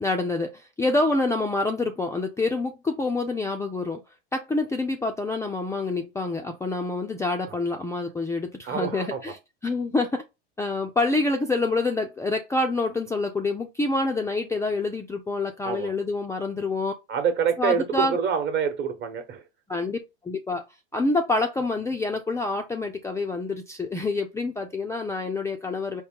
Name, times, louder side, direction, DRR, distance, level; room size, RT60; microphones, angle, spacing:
voice 1, 0.0-4.0 4.3-10.2 10.6-16.9 17.6-18.2 19.7-20.0 20.2-20.6 20.9-26.0, left 3 dB, 10° left, 0.4 m, -27 dB
voice 2, 8.7-9.2 15.6-15.9 17.1-19.4, right 7 dB, 40° right, 1.1 m, -26 dB
4.4 x 2.1 x 3.6 m
hypercardioid pair, 105°, 30 cm